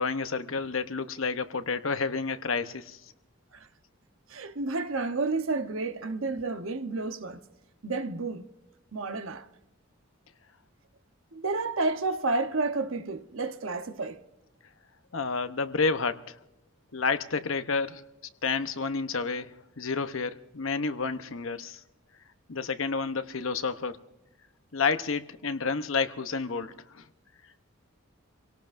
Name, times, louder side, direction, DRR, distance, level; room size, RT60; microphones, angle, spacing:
voice 1, 0.0-3.0 15.1-16.3 16.9-18.0 18.4-21.8 22.5-24.0 24.7-27.0, left 4 dB, 70° left, 0.9 m, -30 dB
voice 2, 4.3-7.4 7.8-8.5 8.9-9.4 11.3-14.2, right 3 dB, 70° right, 1.0 m, -30 dB
27.0 x 18.0 x 2.6 m
head